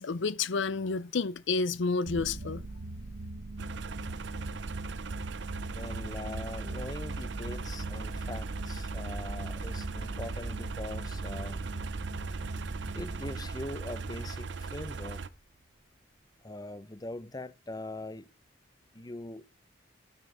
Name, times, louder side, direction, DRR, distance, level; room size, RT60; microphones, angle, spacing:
voice 1, 0.0-2.6, left 4 dB, 65° left, 0.6 m, -30 dB
sound 1, 2.1-14.9, right 2 dB, 90° right, 1.3 m, -40 dB
sound 2, 3.6-15.3, right 4 dB, 60° right, 0.6 m, -39 dB
voice 2, 5.7-11.7 12.9-15.2 16.4-18.3 18.9-19.7, left 2 dB, 20° left, 0.6 m, -42 dB
12.5 x 5.8 x 5.5 m
head